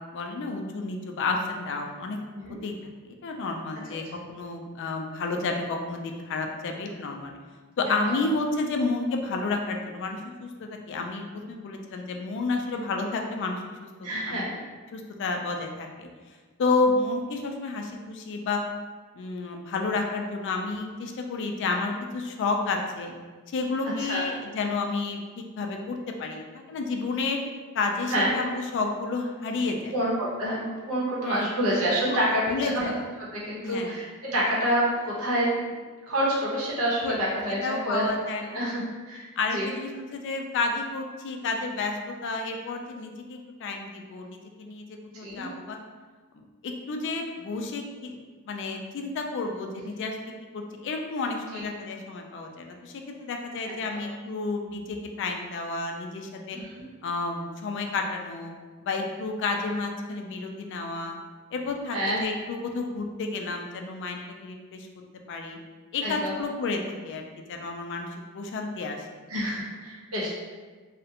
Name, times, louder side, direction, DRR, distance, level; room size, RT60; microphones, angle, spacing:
voice 1, 0.1-2.2 2.6-2.7 3.1-7.3 7.8-14.4 14.9-16.1 16.6-18.6 19.2-23.1 23.5-27.4 27.7-29.9 31.2-31.5 32.1-32.2 32.5-32.9 33.6-34.0 37.0-37.1 37.6-38.7 39.4-44.9 45.1-45.8 46.6-56.6 57.0-58.6 58.8-61.2 61.5-64.9 65.3-65.6 65.9-67.2 67.5-68.1 68.3-69.1, left 3 dB, 55° left, 3 dB, 0.3 m, -31 dB
voice 2, 14.0-14.6 24.0-24.3 28.1-28.4 29.9-32.9 33.2-35.7 36.1-38.1 38.5-39.3 39.5-39.7 45.2-45.5 51.5-51.6 53.7-54.0 56.5-56.8 61.9-62.3 66.0-66.4 69.3-70.3, equal, 80° right, -6 dB, 0.8 m, -28 dB
2.4 x 2.1 x 2.7 m, 1.4 s
head